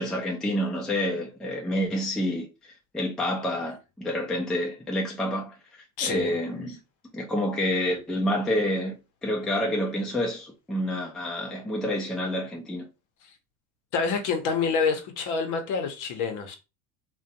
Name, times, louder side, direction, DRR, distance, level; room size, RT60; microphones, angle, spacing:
voice 1, 0.0-2.5 2.9-5.5 6.0-6.8 7.1-8.9 9.2-12.8, left 1 dB, ahead, 0.4 m, -28 dB
voice 2, 6.0-6.3 13.9-16.6, left 5 dB, 45° left, 0.8 m, -27 dB
2.6 x 2.2 x 2.6 m
hypercardioid pair, 95°, 42 cm